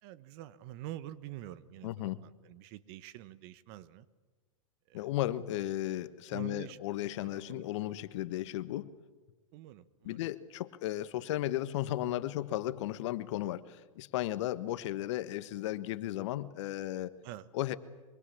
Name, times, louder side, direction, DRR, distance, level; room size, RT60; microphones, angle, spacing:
voice 1, 0.0-4.1 4.9-5.1 6.3-6.8 7.2-7.8 9.5-10.2 17.2-17.5, right 14 dB, 50° right, 15 dB, 1.3 m, -46 dB
voice 2, 1.8-2.2 4.9-8.9 10.0-17.1 17.5-17.8, left 14 dB, 60° left, 14 dB, 1.3 m, -35 dB
24.5 x 24.0 x 8.6 m, 1.3 s
hypercardioid pair, 115°, 17 cm